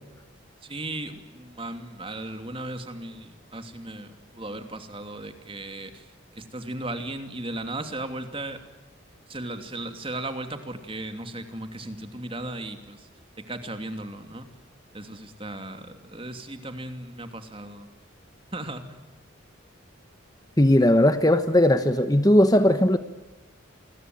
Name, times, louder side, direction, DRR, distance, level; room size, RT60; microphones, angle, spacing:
voice 1, 0.6-8.6 9.3-13.1 13.4-14.5 14.9-17.9 18.5-19.0, right 2 dB, 25° right, 7 dB, 2.7 m, -36 dB
voice 2, 20.6-23.0, left 1 dB, 20° left, 9 dB, 1.2 m, -18 dB
29.0 x 22.0 x 9.4 m, 1.1 s
head